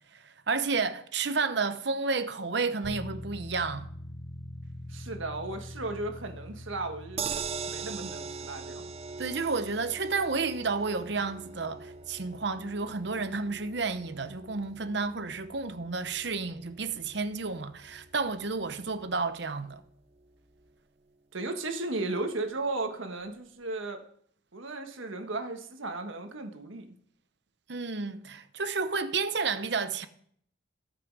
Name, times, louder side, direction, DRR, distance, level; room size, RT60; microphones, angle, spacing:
voice 1, 0.1-3.9 9.2-19.8 27.7-30.1, right 4 dB, 55° right, 0.9 m, -31 dB
sound 1, 2.8-19.2, left 1 dB, 20° left, 0.9 m, -47 dB
voice 2, 4.9-8.9 21.3-24.0 24.5-26.9, right 2 dB, 80° right, 1.5 m, -35 dB
sound 2, 7.2-19.4 19.8-19.9 20.2-20.3, right 6 dB, 30° right, 0.5 m, -42 dB
18.5 x 6.2 x 4.8 m
head